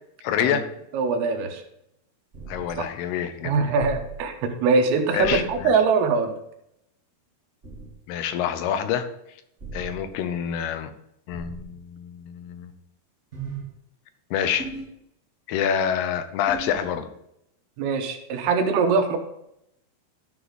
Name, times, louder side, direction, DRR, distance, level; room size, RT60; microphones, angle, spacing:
voice 1, 0.2-0.7 2.5-3.7 5.1-5.7 8.1-9.1 9.7-10.9 11.3-12.7 14.3-14.7 15.5-17.1, left 9 dB, 85° left, 9 dB, 2.7 m, -27 dB
voice 2, 0.9-1.6 2.8-2.9 3.4-6.3 17.8-19.2, right 4 dB, 85° right, 5 dB, 2.9 m, -22 dB
sound 1, 2.3-2.7 3.8-4.1 5.2-5.5 7.6-7.9 9.6-10.0 11.3-11.8 13.3-13.6 14.6-14.8 16.5-16.9, right 4 dB, 45° right, 0.9 m, -36 dB
12.0 x 4.0 x 4.7 m, 0.79 s
omnidirectional pair, 4.5 m